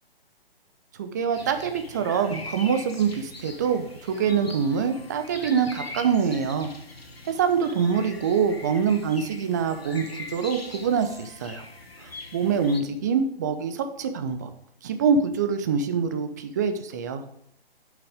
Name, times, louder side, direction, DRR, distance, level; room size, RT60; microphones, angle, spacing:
voice 1, 1.0-6.7 7.3-11.7 12.0-14.5 14.8-17.2, right 6 dB, 20° right, 8 dB, 0.6 m, -25 dB
sound 1, 1.3-12.8, left 2 dB, 80° left, 1.8 m, -42 dB
9.7 x 6.4 x 5.0 m, 0.74 s
figure-of-eight pair, 135°, 30 cm